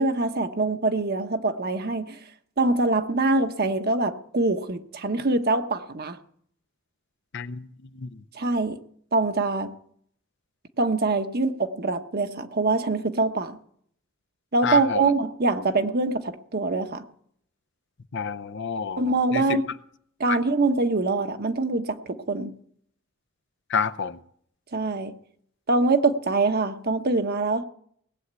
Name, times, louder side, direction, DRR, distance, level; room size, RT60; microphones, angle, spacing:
voice 1, 0.0-2.2 2.6-6.2 8.3-8.8 9.1-9.7 10.8-13.6 14.5-17.0 19.0-19.6 20.2-22.5 24.7-25.1 25.7-27.6, right 3 dB, 50° right, 1.1 m, -24 dB
voice 2, 7.3-7.7 7.9-8.1 14.6-15.1 18.1-19.0 19.3-19.6 20.3-20.4 23.7-24.2, left 6 dB, 60° left, 0.7 m, -28 dB
18.5 x 7.9 x 8.2 m
head